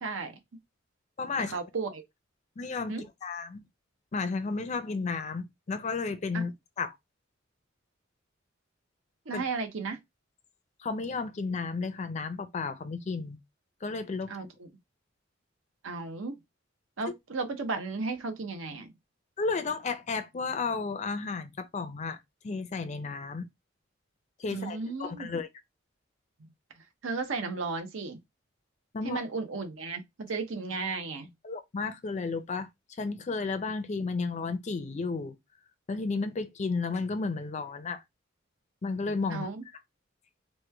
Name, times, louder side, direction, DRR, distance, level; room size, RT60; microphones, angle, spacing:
voice 1, 0.0-0.4 1.4-2.0 2.9-3.1 6.3-6.5 9.3-10.0 14.3-14.7 15.8-16.4 17.0-18.9 24.5-25.3 27.0-28.2 29.0-31.3 39.3-39.6, right 4 dB, 80° right, 0.7 m, -34 dB
voice 2, 1.2-1.6 2.6-3.6 4.1-6.5 6.8-6.9 9.3-9.4 10.8-13.4 13.8-14.3 19.4-22.2 22.4-23.5 24.4-25.5 28.9-29.2 31.4-32.7 33.0-35.3 35.9-38.0 38.8-39.5, left 4 dB, 35° left, 0.4 m, -33 dB
3.0 x 2.2 x 3.3 m
head